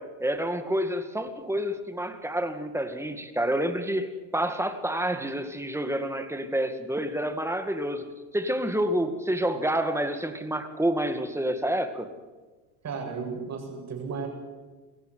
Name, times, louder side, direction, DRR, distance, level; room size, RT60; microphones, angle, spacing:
voice 1, 0.0-8.0 8.3-12.1, right 1 dB, 5° right, 8 dB, 2.1 m, -28 dB
voice 2, 12.8-14.3, right 5 dB, 35° right, 2 dB, 8.0 m, -34 dB
23.5 x 14.5 x 9.6 m, 1.3 s
supercardioid pair, 120°, 44 cm